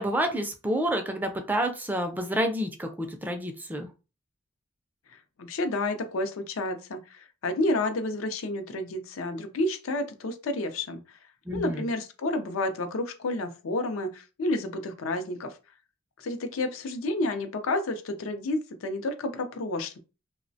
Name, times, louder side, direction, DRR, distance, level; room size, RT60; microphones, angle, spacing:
voice 1, 0.0-3.9 11.5-11.8, right 1 dB, 10° right, 5 dB, 0.3 m, -29 dB
voice 2, 5.4-11.2 11.5-15.6 16.2-20.0, left 2 dB, 90° left, 7 dB, 0.5 m, -30 dB
3.0 x 2.0 x 2.6 m, 0.32 s
head